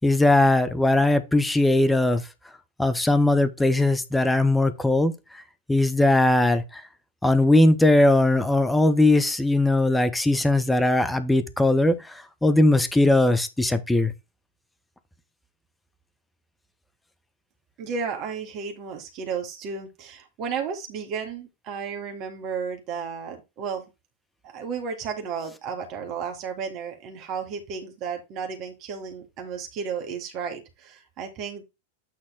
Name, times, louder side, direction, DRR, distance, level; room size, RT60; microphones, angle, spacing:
voice 1, 0.0-2.2 2.8-5.1 5.7-6.8 7.2-14.1, left 2 dB, 5° left, 1.2 m, -20 dB
voice 2, 17.8-23.9 24.4-31.6, right 6 dB, 40° right, 2.0 m, -33 dB
8.9 x 4.0 x 3.9 m
figure-of-eight pair, 90°, 0 cm